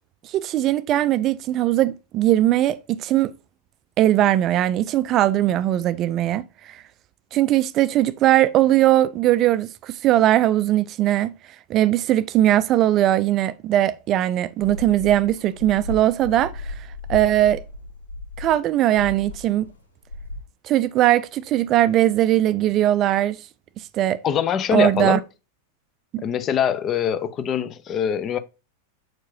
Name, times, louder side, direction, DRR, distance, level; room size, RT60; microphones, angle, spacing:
voice 1, 0.2-3.3 4.0-6.8 7.3-11.3 11.7-16.7 17.1-17.6 18.4-19.7 20.6-23.4 23.9-24.2 24.7-25.2 26.1-26.2, right 13 dB, 35° right, 0.4 m, -20 dB
sound 1, 14.6-19.8 20.0-20.4, left 2 dB, 75° left, 0.7 m, -35 dB
voice 2, 24.2-25.2 26.2-28.4, left 8 dB, 30° left, 0.6 m, -23 dB
7.7 x 4.6 x 2.8 m
figure-of-eight pair, 90°, 0 cm